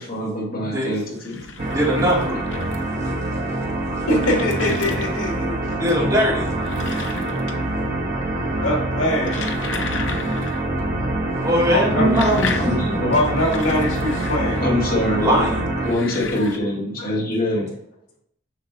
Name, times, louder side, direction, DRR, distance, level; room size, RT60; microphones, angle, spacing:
voice 1, 0.0-1.4 2.3-2.4 12.0-13.2 14.6-15.4 15.8-17.7, left 1 dB, 45° left, -3 dB, 2.0 m, -24 dB
sound 1, 1.0-3.0 3.7-5.4 6.4-7.8 8.1-8.6 9.0-10.7 11.0-11.1 11.8-14.9 15.7-16.6, left 4 dB, 65° left, 0.7 m, -34 dB
sound 2, 1.6-15.9, right 1 dB, 45° right, 1.0 m, -25 dB
voice 2, 1.7-2.4 5.8-6.5 11.4-13.0 15.2-15.6, equal, 20° right, -6 dB, 2.4 m, -20 dB
voice 3, 4.1-5.6 8.6-9.4 11.7-12.1 13.1-14.6 16.1-16.7 17.0-17.3, left 1 dB, 85° left, -1 dB, 2.1 m, -23 dB
7.4 x 6.0 x 2.6 m, 0.74 s
head